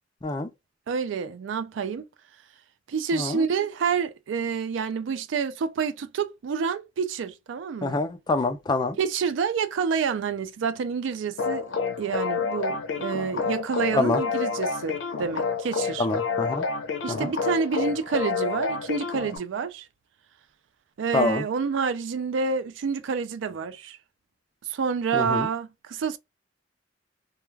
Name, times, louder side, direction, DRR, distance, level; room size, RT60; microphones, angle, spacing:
voice 1, 0.9-2.1 2.9-8.0 9.0-16.1 17.0-19.9 21.0-24.0 24.7-26.2, right 6 dB, 80° right, 0.4 m, -28 dB
voice 2, 3.1-3.4 7.8-9.0 13.9-14.2 16.0-16.6 17.1-17.3 21.1-21.4 25.1-25.5, left 2 dB, 25° left, 0.3 m, -26 dB
sound 1, 11.4-19.4, left 5 dB, 80° left, 0.5 m, -29 dB
2.3 x 2.2 x 3.1 m
head